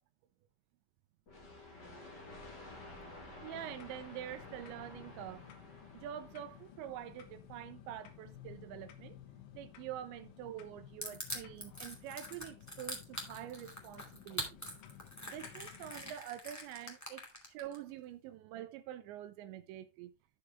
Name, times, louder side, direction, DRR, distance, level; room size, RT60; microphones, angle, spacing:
sound 1, 1.3-7.0, left 2 dB, 50° left, 1.3 m, -52 dB
voice 1, 2.9-5.5 5.9-9.2 9.5-14.6 15.2-20.1, right 11 dB, 85° right, 2.8 m, -46 dB
sound 2, 3.5-16.2, left 10 dB, 85° left, 3.6 m, -55 dB
Crushing, 11.0-17.8, equal, 15° left, 0.6 m, -43 dB
13.5 x 4.9 x 3.4 m
omnidirectional pair, 5.4 m